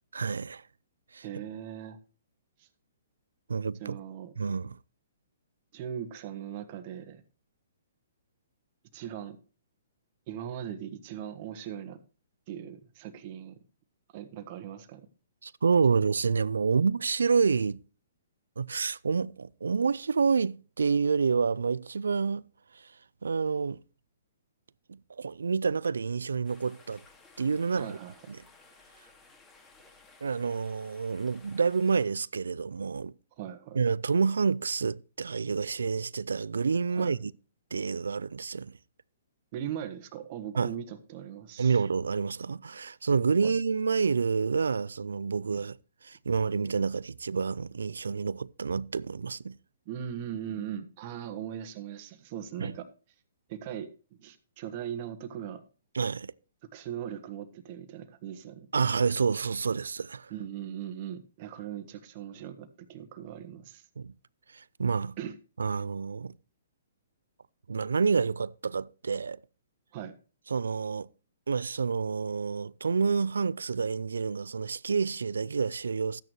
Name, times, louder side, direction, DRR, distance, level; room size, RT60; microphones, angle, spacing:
voice 1, 0.1-0.6 1.1-1.4 3.5-4.0 4.4-4.8 15.4-17.8 18.6-22.5 22.7-22.9 23.2-23.8 24.9-27.0 27.4-28.0 28.3-28.4 30.2-33.1 33.7-37.3 37.7-38.8 40.6-40.7 41.6-45.8 46.0-49.6 52.6-52.7 55.9-56.3 58.7-60.3 64.0-64.1 64.5-65.2 65.6-66.4 67.7-69.4 70.5-71.1 71.5-76.2, right 5 dB, 85° right, 0.4 m, -28 dB
voice 2, 1.2-2.0 2.6-2.7 3.8-4.3 5.7-7.2 8.9-9.4 10.3-12.0 12.5-13.6 14.1-15.0 27.7-28.1 33.4-33.8 36.9-37.2 39.5-41.8 43.4-43.6 49.8-52.9 53.5-53.9 54.2-55.6 56.7-58.7 60.3-63.9 65.2-65.4 69.9-70.1, right 9 dB, 40° right, 1.5 m, -39 dB
sound 1, 26.4-32.0, left 3 dB, 15° left, 2.4 m, -57 dB
13.5 x 9.0 x 3.1 m
hypercardioid pair, 140°, 0 cm